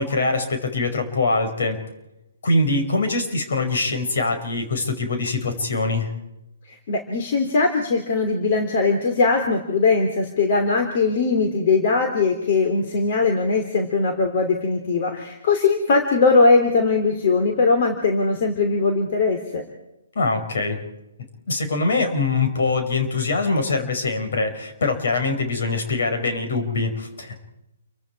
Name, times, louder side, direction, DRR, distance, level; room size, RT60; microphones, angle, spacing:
voice 1, 0.0-1.8 2.4-6.1 20.2-20.8 21.5-27.4, left 3 dB, 65° left, 5 dB, 5.6 m, -23 dB
voice 2, 6.7-19.6, left 4 dB, 50° left, 4 dB, 3.2 m, -20 dB
29.5 x 24.0 x 4.8 m, 0.92 s
figure-of-eight pair, 135°, 0 cm